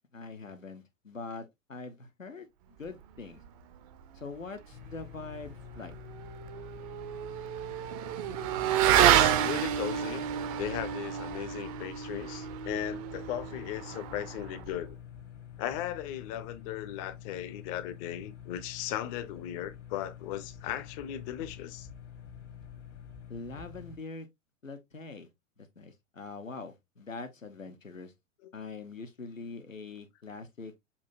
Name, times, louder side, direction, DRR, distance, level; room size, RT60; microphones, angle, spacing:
voice 1, 0.1-2.5 2.8-3.4 4.1-5.9 23.3-24.3 24.6-25.3 25.6-28.1 28.5-30.8, left 4 dB, 85° left, 0.9 m, -43 dB
sound 1, 4.7-24.0, left 8 dB, 65° left, 1.2 m, -48 dB
Motorcycle / Accelerating revving vroom, 6.0-14.8, right 11 dB, 30° right, 0.5 m, -29 dB
voice 2, 8.9-10.3 10.6-15.0 15.6-21.9 28.4-28.5, left 11 dB, 30° left, 0.5 m, -37 dB
7.0 x 2.7 x 2.6 m
figure-of-eight pair, 100°, 39 cm